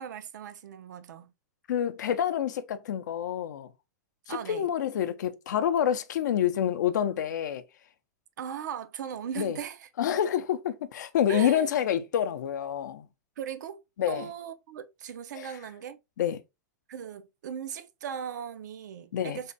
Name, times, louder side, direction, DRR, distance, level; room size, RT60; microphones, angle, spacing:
voice 1, 0.0-1.3 4.3-4.7 8.4-9.9 11.3-11.7 13.4-13.8 14.1-16.0 16.9-19.5, right 8 dB, 85° right, 0.4 m, -38 dB
voice 2, 1.7-3.7 4.3-7.6 9.4-9.6 10.0-13.1 14.0-14.3 15.4-15.5 16.2-16.4 19.1-19.4, left 10 dB, 80° left, 0.4 m, -28 dB
3.4 x 2.1 x 2.6 m
supercardioid pair, 145°, 9 cm